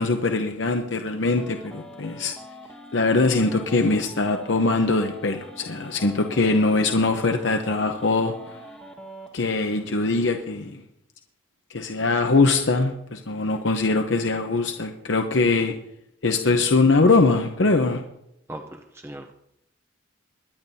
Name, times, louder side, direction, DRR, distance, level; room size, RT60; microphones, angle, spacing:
voice 1, 0.0-2.3 2.9-8.6 9.3-10.8 11.7-15.7 16.2-18.0, left 3 dB, 70° left, 5 dB, 0.8 m, -22 dB
sound 1, 1.3-9.3, equal, 5° left, 1.4 m, -44 dB
voice 2, 18.5-19.3, right 1 dB, 10° right, 4 dB, 0.6 m, -38 dB
22.0 x 10.5 x 2.7 m, 0.79 s
head